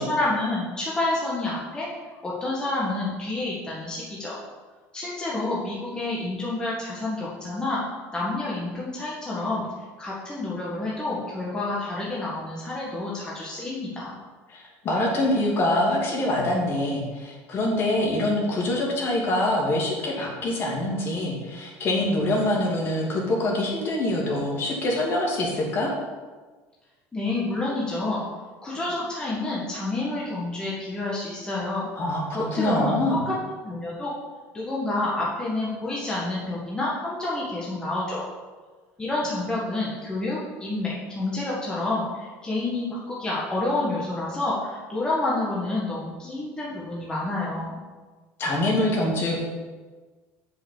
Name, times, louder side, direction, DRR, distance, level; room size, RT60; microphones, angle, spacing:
voice 1, 0.0-1.9 2.2-4.4 4.9-7.8 8.1-9.7 10.0-14.1 27.1-28.2 28.6-31.9 32.3-33.3 33.6-34.1 34.5-38.3 39.0-47.8, left 2 dB, 15° left, -6 dB, 1.6 m, -29 dB
voice 2, 14.8-25.9 32.0-32.2 32.6-33.2 48.4-49.4, left 1 dB, 40° left, -2 dB, 2.5 m, -24 dB
7.0 x 5.5 x 7.2 m, 1.4 s
cardioid pair, 140°, 6 cm